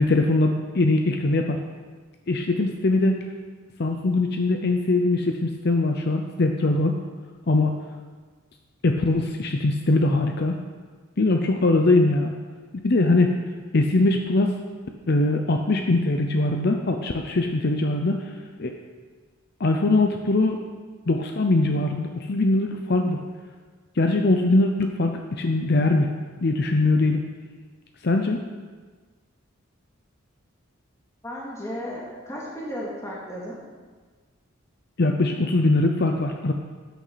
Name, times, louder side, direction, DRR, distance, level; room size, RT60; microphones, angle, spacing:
voice 1, 0.0-1.6 2.3-3.2 3.8-6.9 7.5-7.7 8.8-10.6 11.2-12.3 12.8-13.3 13.7-14.6 15.1-18.2 18.6-18.7 19.6-20.6 21.1-23.2 24.0-26.1 26.4-27.3 28.0-28.4 35.0-36.5, left 2 dB, 50° left, 4 dB, 0.7 m, -21 dB
voice 2, 31.2-33.6, equal, 15° left, -5 dB, 2.3 m, -34 dB
13.5 x 9.3 x 4.1 m, 1.4 s
head